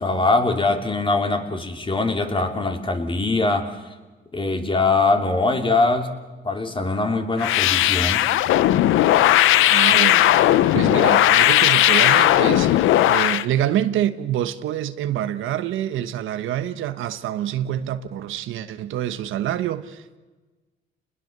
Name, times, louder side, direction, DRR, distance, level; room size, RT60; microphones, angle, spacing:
voice 1, 0.0-3.7 4.3-6.1 6.4-8.2, left 3 dB, 25° left, 3.1 m, -22 dB
sound 1, 7.4-13.5, left 13 dB, 85° left, 0.7 m, -17 dB
voice 2, 9.7-10.3 10.7-20.2, right 11 dB, 85° right, 1.2 m, -26 dB
29.5 x 20.5 x 6.7 m
cardioid pair, 90°, 20 cm